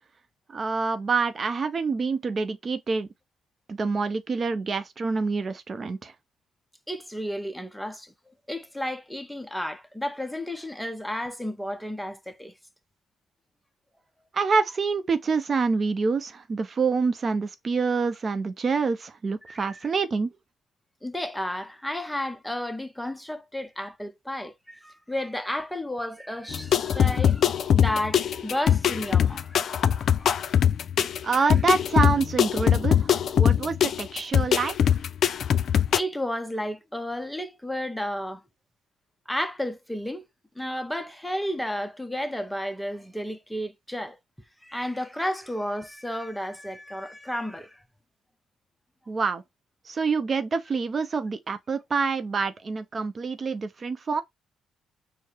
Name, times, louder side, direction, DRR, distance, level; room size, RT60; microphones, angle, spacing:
voice 1, 0.5-3.1 3.7-6.1 14.3-20.3 31.2-33.1 33.4-35.0 49.1-49.4 49.9-54.2, right 4 dB, 40° right, 0.5 m, -26 dB
voice 2, 6.9-8.1 8.5-12.5 19.5-19.8 21.0-30.0 35.9-38.4 39.3-40.2 40.6-44.2 44.6-47.8, left 1 dB, 5° left, 0.6 m, -32 dB
sound 1, 26.5-36.0, left 9 dB, 60° left, 0.3 m, -22 dB
4.6 x 2.0 x 4.3 m
supercardioid pair, 80°, 0 cm